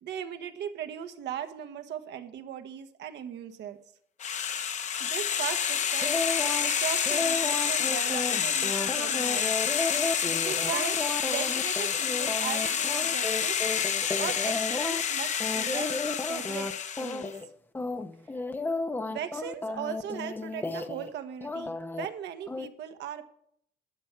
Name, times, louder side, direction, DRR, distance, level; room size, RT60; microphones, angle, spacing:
voice 1, 0.0-3.8 5.0-9.6 10.2-11.0 11.3-13.6 14.2-16.7 17.0-17.3 19.1-23.2, right 9 dB, 85° right, 8 dB, 1.4 m, -38 dB
sound 1, 4.2-17.3, left 8 dB, 45° left, 0.8 m, -29 dB
sound 2, 6.0-6.7 7.0-15.0 15.4-16.7 17.0-17.5 17.7-21.1 21.4-22.1 22.5-22.7, left 3 dB, 10° left, 0.6 m, -33 dB
12.0 x 8.1 x 5.9 m, 0.66 s
cardioid pair, 170°, 18 cm